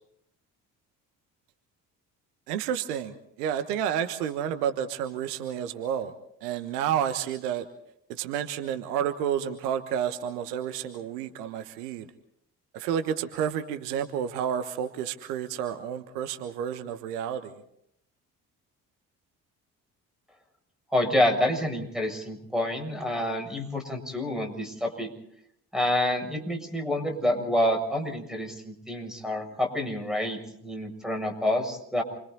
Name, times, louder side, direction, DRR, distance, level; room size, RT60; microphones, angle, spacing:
voice 1, 2.5-6.1 6.4-7.6 8.1-12.1 12.7-17.6, right 9 dB, 70° right, 10 dB, 1.4 m, -30 dB
voice 2, 20.9-25.1 25.7-32.0, left 1 dB, ahead, 5 dB, 7.2 m, -28 dB
28.5 x 24.0 x 4.1 m, 0.71 s
figure-of-eight pair, 45°, 48 cm